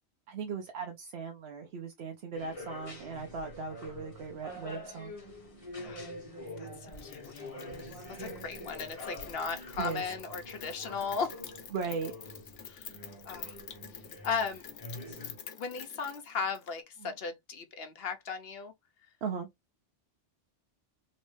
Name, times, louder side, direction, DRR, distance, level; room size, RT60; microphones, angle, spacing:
voice 1, 0.3-5.1 8.1-8.4 9.8-10.0 11.7-12.1 17.0-17.1 19.2-19.5, right 5 dB, 65° right, 0.9 m, -38 dB
sound 1, 2.3-15.4, left 1 dB, 30° left, 1.3 m, -46 dB
voice 2, 5.8-6.1 6.6-7.3 8.2-11.4 12.6-12.9 13.2-13.6 14.2-14.6 15.6-18.7, left 5 dB, 60° left, 1.0 m, -36 dB
Rain, 6.9-16.8, left 8 dB, 80° left, 1.1 m, -48 dB
3.1 x 3.1 x 3.2 m
omnidirectional pair, 1.2 m